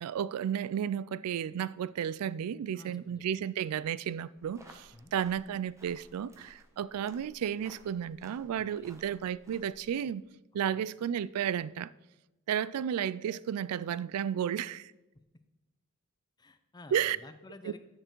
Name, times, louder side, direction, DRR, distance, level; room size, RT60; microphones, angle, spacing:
voice 1, 0.0-10.2 10.5-11.9 12.5-14.9 16.9-17.2, right 9 dB, 80° right, 0.3 m, -33 dB
voice 2, 2.7-3.5 4.9-5.1 8.5-9.0 10.7-10.9 15.1-15.4 16.4-17.8, left 2 dB, 20° left, 0.5 m, -53 dB
sound 1, 4.4-9.9, right 1 dB, 15° right, 1.0 m, -58 dB
9.9 x 6.6 x 4.5 m
head